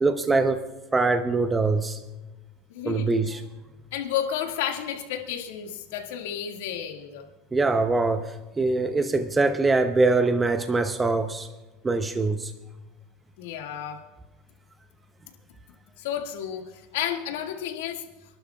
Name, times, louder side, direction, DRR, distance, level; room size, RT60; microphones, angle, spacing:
voice 1, 0.0-0.6 0.9-2.0 2.9-3.4 7.5-11.5 11.8-12.5, right 3 dB, 15° right, 0.7 m, -23 dB
voice 2, 2.7-3.1 3.9-7.3 13.4-14.0 16.0-18.0, left 9 dB, 85° left, 1.9 m, -31 dB
28.5 x 11.5 x 2.4 m
supercardioid pair, 130°, 0 cm